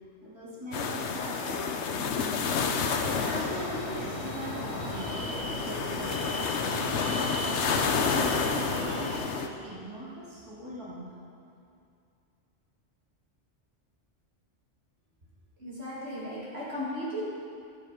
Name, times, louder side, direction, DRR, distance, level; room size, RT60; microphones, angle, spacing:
voice 1, 0.2-2.9 3.2-5.1 5.5-6.2 6.7-11.1, equal, 20° right, -9 dB, 2.8 m, -40 dB
sound 1, 0.7-9.5, left 5 dB, 70° left, 1.0 m, -30 dB
sound 2, 2.9-9.2, right 1 dB, 85° right, 2.4 m, -37 dB
voice 2, 15.6-17.2, equal, 60° right, -8 dB, 2.3 m, -36 dB
13.0 x 7.7 x 5.1 m, 2.5 s
omnidirectional pair, 1.2 m